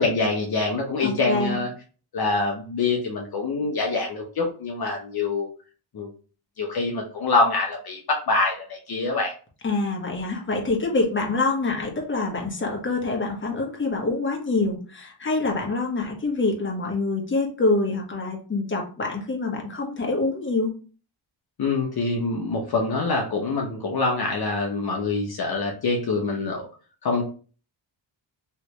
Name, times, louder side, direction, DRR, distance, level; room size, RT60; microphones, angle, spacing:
voice 1, 0.0-1.7 2.1-5.5 5.9-6.1 6.6-9.3 21.6-26.7 27.0-27.2, left 3 dB, 50° left, 0 dB, 0.9 m, -25 dB
voice 2, 1.0-1.6 9.6-20.7, left 3 dB, 25° left, 0 dB, 1.2 m, -26 dB
3.3 x 3.0 x 2.9 m, 0.38 s
cardioid pair, 95°, 48 cm